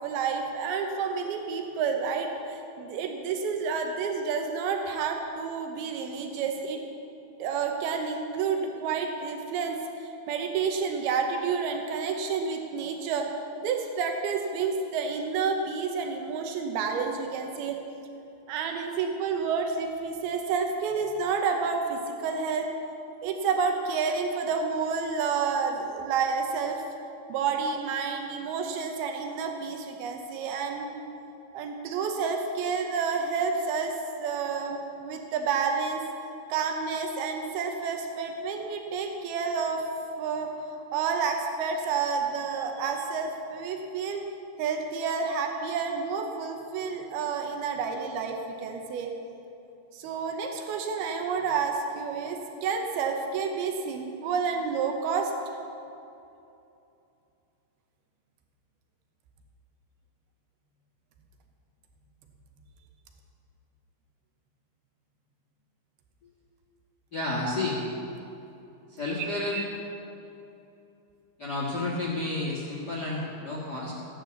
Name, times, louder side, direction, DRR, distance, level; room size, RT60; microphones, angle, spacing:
voice 1, 0.0-6.8 7.4-13.3 13.6-17.8 18.5-22.7 23.2-26.8 27.3-31.0 31.5-36.0 36.5-39.8 40.2-40.5 40.9-44.2 44.6-49.1 49.9-55.6 67.4-67.6 69.2-69.7, right 5 dB, 90° right, 3 dB, 2.9 m, -30 dB
voice 2, 67.1-67.8 68.9-69.6 71.4-73.9, left 2 dB, 40° left, -3 dB, 1.5 m, -31 dB
16.0 x 9.9 x 7.1 m, 2.8 s
omnidirectional pair, 4.3 m